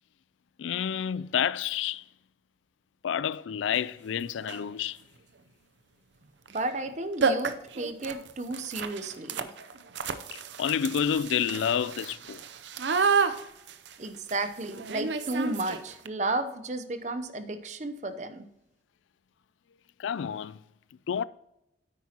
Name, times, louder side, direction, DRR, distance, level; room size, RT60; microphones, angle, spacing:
voice 1, 0.6-2.0 3.0-5.0 10.3-12.4 20.0-20.6 21.1-21.2, left 8 dB, 90° left, 0.3 m, -29 dB
sound 1, 3.7-3.8 4.4-4.7 6.5-6.6 6.9-7.0 7.2-16.1, right 5 dB, 75° right, 0.6 m, -31 dB
voice 2, 6.5-9.5 14.0-18.5, right 2 dB, 40° right, 0.7 m, -33 dB
9.7 x 8.5 x 2.9 m
head